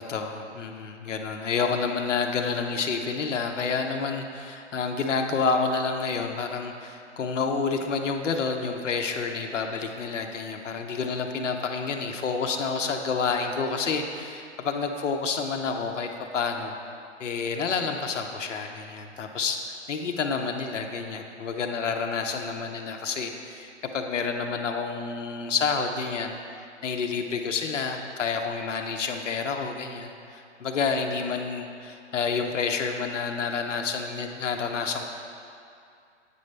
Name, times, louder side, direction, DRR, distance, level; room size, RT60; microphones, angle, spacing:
voice 1, 0.0-16.8 17.2-19.6 19.9-23.7 23.9-26.3 26.8-35.0, left 5 dB, 85° left, 4 dB, 0.7 m, -29 dB
8.4 x 5.4 x 3.2 m, 2.4 s
hypercardioid pair, 140°, 36 cm